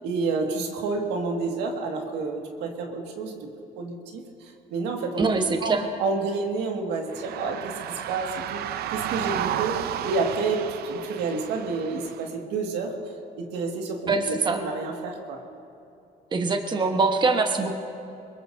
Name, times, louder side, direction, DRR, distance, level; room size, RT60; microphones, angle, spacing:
voice 1, 0.0-3.5 3.8-5.3 5.6-5.7 6.0-7.7 8.1-9.8 10.0-13.0 13.4-15.4, right 4 dB, 90° right, 2 dB, 2.0 m, -29 dB
voice 2, 5.2-5.9 14.1-14.6 16.3-17.8, right 3 dB, 25° right, 5 dB, 1.2 m, -23 dB
sound 1, 7.1-12.3, right 11 dB, 70° right, 0.6 m, -32 dB
23.5 x 21.5 x 2.7 m, 2.7 s
cardioid pair, 110°, 17 cm